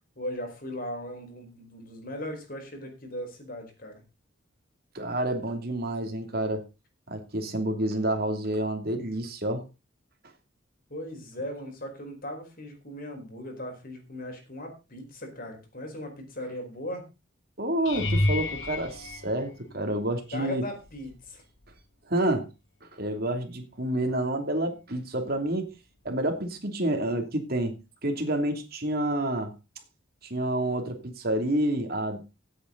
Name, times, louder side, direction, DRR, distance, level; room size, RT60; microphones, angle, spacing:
voice 1, 0.2-4.0 10.9-17.1 20.3-21.4, left 1 dB, 50° left, 4 dB, 4.8 m, -38 dB
voice 2, 4.9-6.6 7.1-9.6 17.6-20.6 22.1-22.5 22.8-25.7 26.0-29.5 30.2-32.2, right 1 dB, 50° right, 4 dB, 2.8 m, -29 dB
sound 1, 17.9-20.1 20.8-21.3 21.6-21.8 26.1-26.2, left 1 dB, 75° left, 2.1 m, -30 dB
17.5 x 8.6 x 4.0 m, 0.28 s
head